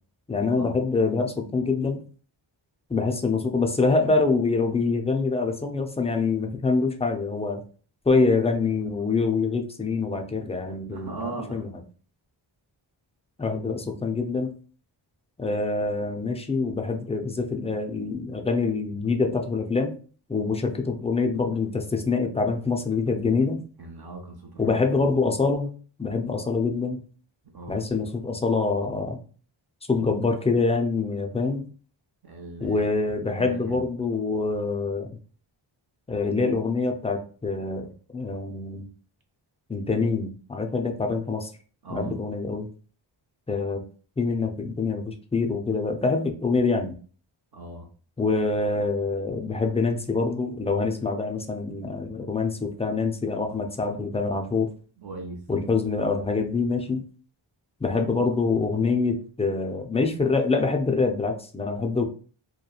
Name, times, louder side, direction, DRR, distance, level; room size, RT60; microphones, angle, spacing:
voice 1, 0.3-2.0 2.9-7.6 8.1-11.7 13.4-14.6 15.4-20.0 20.3-23.6 24.6-27.0 27.7-29.2 29.9-31.7 32.6-35.1 36.1-37.9 38.1-38.9 39.7-41.5 41.9-42.7 43.5-43.8 44.2-46.9 48.2-54.7 55.5-57.1 57.8-62.0, left 4 dB, 15° left, 0.4 m, -25 dB
voice 2, 10.9-11.7 23.8-24.8 27.4-27.8 32.2-32.9 33.3-33.9 41.8-42.2 47.5-47.9 55.0-55.4, right 3 dB, 50° right, 0.6 m, -38 dB
2.9 x 2.2 x 2.3 m
cardioid pair, 65°, 48 cm